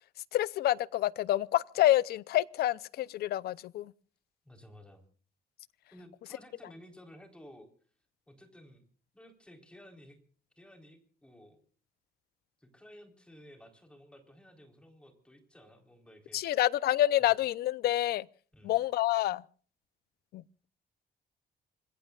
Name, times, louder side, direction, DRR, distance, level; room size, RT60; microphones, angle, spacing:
voice 1, 0.3-3.9 16.3-18.3 18.6-19.4 20.3-20.7, left 14 dB, 85° left, 0.6 m, -28 dB
voice 2, 4.4-5.0 5.9-7.7 8.3-8.8 9.1-10.2 10.6-11.6 12.6-16.6 17.2-17.4 18.5-18.7, equal, 5° left, 4.0 m, -54 dB
26.5 x 20.5 x 2.4 m
cardioid pair, 150°, 16 cm